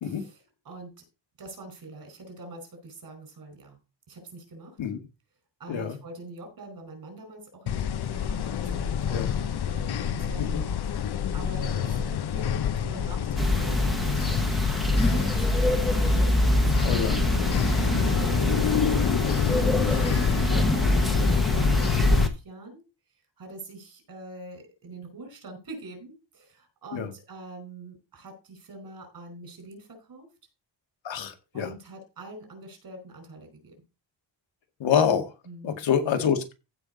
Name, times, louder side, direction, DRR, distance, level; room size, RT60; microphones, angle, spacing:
voice 1, 0.0-1.0 1.4-3.8 4.1-4.8 5.6-14.6 14.9-22.8 23.4-30.3 31.5-33.7 35.4-35.8, right 2 dB, 50° right, 5 dB, 4.9 m, -44 dB
sound 1, 7.7-22.3, left 8 dB, 60° left, 0.9 m, -28 dB
sound 2, 13.4-22.3, equal, ahead, 1.3 m, -24 dB
voice 2, 16.9-17.2 20.5-20.6 26.9-27.1 31.0-31.7 34.8-35.3 35.6-36.5, left 7 dB, 85° left, 6 dB, 2.0 m, -26 dB
15.5 x 5.5 x 4.0 m, 0.29 s
wide cardioid pair, 175°, 44 cm